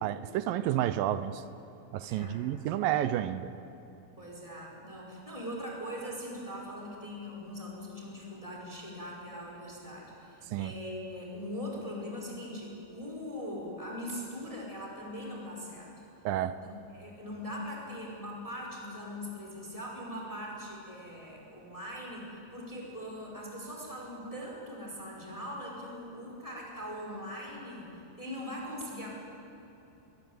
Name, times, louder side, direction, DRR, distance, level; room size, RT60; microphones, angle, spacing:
voice 1, 0.0-1.4 1.9-3.5 10.5-10.8 16.3-16.6, right 12 dB, 75° right, 12 dB, 2.3 m, -30 dB
voice 2, 4.2-15.9 16.6-29.1, equal, 10° left, -2 dB, 4.6 m, -41 dB
23.0 x 20.5 x 9.3 m, 2.9 s
omnidirectional pair, 4.4 m